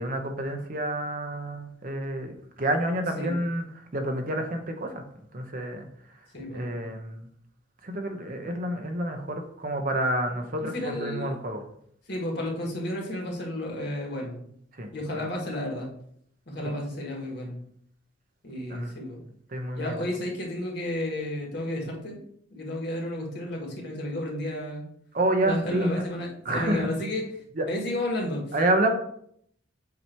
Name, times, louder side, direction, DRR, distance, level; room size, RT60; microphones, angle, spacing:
voice 1, 0.0-5.0 5.3-5.9 6.5-7.3 7.8-11.6 14.7-14.9 15.2-15.3 18.7-18.9 19.5-20.0 25.1-26.0 26.4-26.9 27.5-27.7 28.5-28.9, right 1 dB, 45° right, 4 dB, 0.9 m, -29 dB
voice 2, 6.3-6.8 10.6-11.3 12.1-14.4 14.9-15.9 16.5-17.6 18.4-19.2 19.7-22.2 22.5-24.9 25.4-27.3 27.7-28.4, left 1 dB, 55° left, -1 dB, 1.7 m, -32 dB
7.6 x 2.9 x 4.5 m, 0.67 s
head